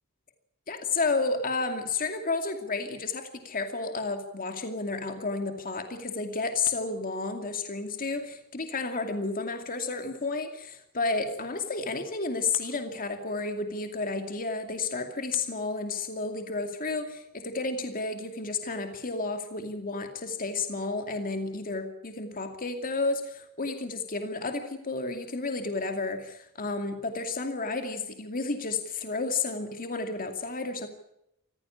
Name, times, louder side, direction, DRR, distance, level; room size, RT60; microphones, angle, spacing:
voice 1, 0.7-30.9, left 3 dB, 40° left, 6 dB, 2.5 m, -31 dB
26.5 x 15.5 x 9.9 m, 0.80 s
head